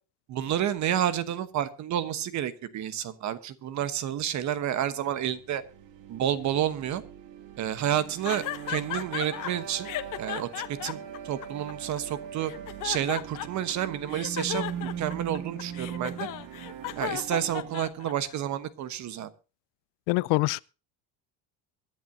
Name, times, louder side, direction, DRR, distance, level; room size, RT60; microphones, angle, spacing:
voice 1, 0.3-5.6 6.1-7.0 7.6-9.9 10.2-11.0 11.2-12.5 12.8-16.3 17.0-19.3, right 10 dB, 40° right, 1.1 m, -30 dB
sound 1, 5.1-18.0, right 8 dB, 85° right, 2.5 m, -41 dB
sound 2, 8.2-9.5 9.8-12.0 12.4-13.7 14.1-18.4, left 14 dB, 45° left, 1.1 m, -35 dB
voice 2, 20.1-20.6, left 24 dB, 80° left, 0.6 m, -24 dB
23.5 x 11.0 x 2.7 m
cardioid pair, 165°, 44 cm